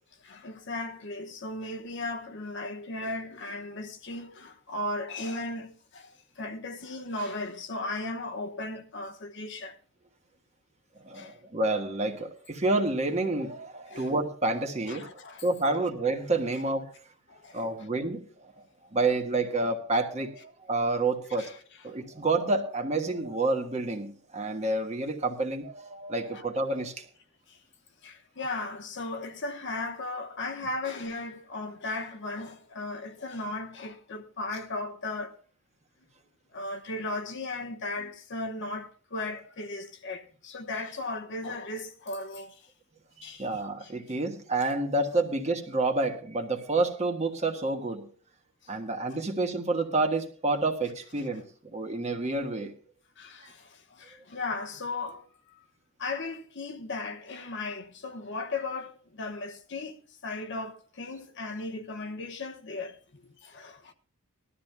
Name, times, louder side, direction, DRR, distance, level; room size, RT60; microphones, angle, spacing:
voice 1, 0.2-9.8 11.1-11.4 13.9-14.1 14.9-15.5 17.3-17.9 21.4-21.6 26.3-26.4 27.5-27.6 28.0-35.4 36.5-42.7 43.2-43.5 43.8-43.9 53.2-55.3 56.0-63.9, left 2 dB, 55° left, 1.1 m, -36 dB
voice 2, 11.0-16.9 17.5-18.3 18.5-18.6 18.9-21.5 21.8-27.1 43.4-48.1 48.7-51.4 51.7-52.7 53.4-53.5, right 2 dB, 30° right, 1.4 m, -29 dB
20.0 x 13.0 x 2.3 m
head